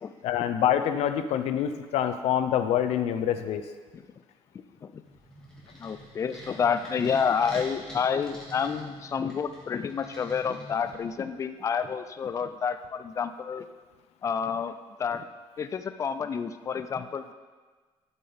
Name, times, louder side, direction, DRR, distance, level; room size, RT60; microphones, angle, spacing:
voice 1, 0.2-3.6, left 10 dB, 85° left, 9 dB, 0.6 m, -26 dB
sound 1, 5.0-11.3, right 1 dB, 5° left, 1.9 m, -46 dB
voice 2, 5.8-13.7 14.2-15.3 15.6-17.3, left 6 dB, 30° left, 10 dB, 0.4 m, -29 dB
12.0 x 5.5 x 3.5 m, 1.4 s
cardioid pair, 150°, 11 cm